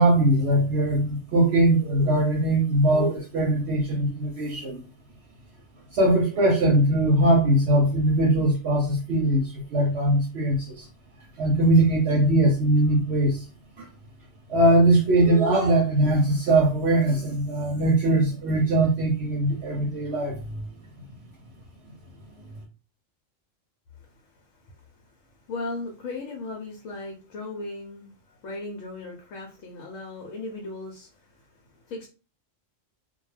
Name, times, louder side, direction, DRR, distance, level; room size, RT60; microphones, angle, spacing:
voice 1, 0.0-4.8 5.9-10.9 11.4-13.4 13.8-13.9 14.5-20.6, right 1 dB, 65° right, 0 dB, 0.8 m, -21 dB
voice 2, 24.0-32.1, left 2 dB, 85° left, 1 dB, 1.0 m, -38 dB
2.3 x 2.2 x 3.1 m, 0.33 s
omnidirectional pair, 1.3 m